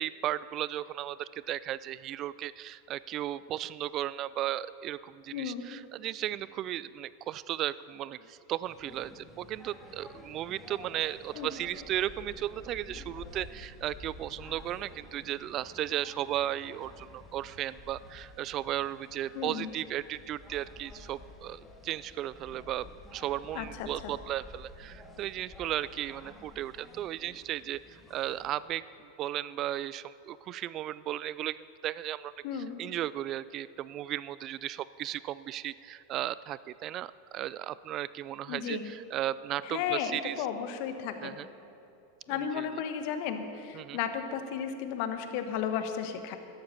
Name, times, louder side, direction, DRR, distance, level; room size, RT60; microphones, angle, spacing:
voice 1, 0.0-22.9 23.1-28.8 29.2-40.4 41.2-41.5 42.3-42.8 43.7-44.0, right 13 dB, 40° right, 18 dB, 0.3 m, -35 dB
voice 2, 5.3-5.6 11.3-11.5 19.3-19.7 23.5-24.1 32.4-32.8 38.5-38.9 39.6-41.4 42.3-46.4, left 8 dB, 55° left, 8 dB, 1.2 m, -34 dB
sound 1, 8.6-28.6, left 2 dB, 15° left, 2.0 m, -51 dB
12.5 x 12.0 x 5.6 m, 2.8 s
hypercardioid pair, 90°, 0 cm